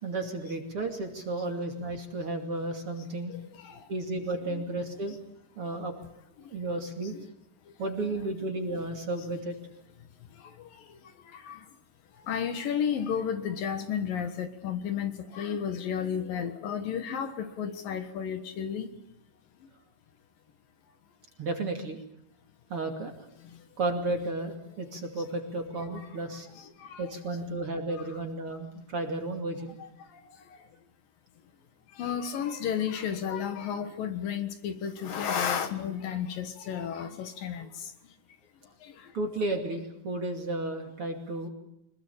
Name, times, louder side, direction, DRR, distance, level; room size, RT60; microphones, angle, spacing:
voice 1, 0.0-3.3 3.9-5.2 5.6-5.9 6.5-7.1 7.8-9.6 21.4-22.0 22.7-23.1 23.8-26.5 27.0-29.8 39.1-41.5, right 2 dB, 40° right, 3.0 m, -33 dB
voice 2, 3.3-3.8 4.5-4.6 5.1-5.2 7.0-7.3 10.4-11.0 11.3-11.6 12.3-18.9 25.8-26.1 26.5-27.0 28.1-28.2 29.8-29.9 32.0-37.9 38.8-39.1, left 8 dB, 65° left, 3.0 m, -33 dB
25.5 x 21.0 x 8.7 m
omnidirectional pair, 4.6 m